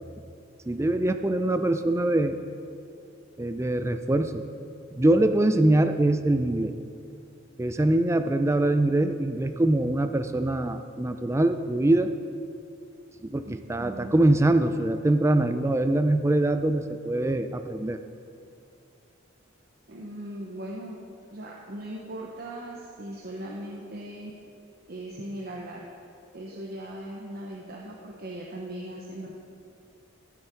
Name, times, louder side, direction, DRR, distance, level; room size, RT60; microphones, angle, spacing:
voice 1, 0.7-2.4 3.4-4.4 4.9-6.7 7.6-12.1 13.2-18.0, right 1 dB, 15° right, 9 dB, 0.4 m, -23 dB
voice 2, 13.4-14.1 19.9-21.0 21.3-24.3 24.9-25.8 26.3-29.3, right 1 dB, 50° right, -2 dB, 0.9 m, -39 dB
14.0 x 8.1 x 4.5 m, 2.5 s
head